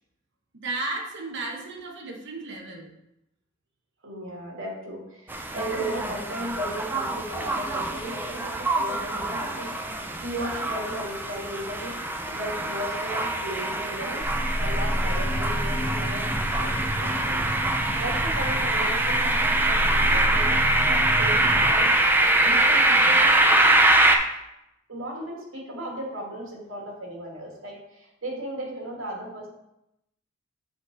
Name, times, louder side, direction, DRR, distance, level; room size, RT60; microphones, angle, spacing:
voice 1, 0.6-2.9, right 2 dB, 60° right, 0 dB, 1.2 m, -34 dB
voice 2, 4.0-9.7 10.2-11.9 12.3-14.2 14.6-16.3 16.5-17.5 17.9-20.6 20.9-21.9 22.4-23.5 24.9-29.5, right 1 dB, 85° right, -2 dB, 2.1 m, -36 dB
sound 1, 5.3-24.2, right 2 dB, 10° right, 0.5 m, -24 dB
sound 2, 14.2-23.4, equal, 30° left, 1.7 m, -30 dB
7.3 x 4.1 x 4.0 m, 0.86 s
head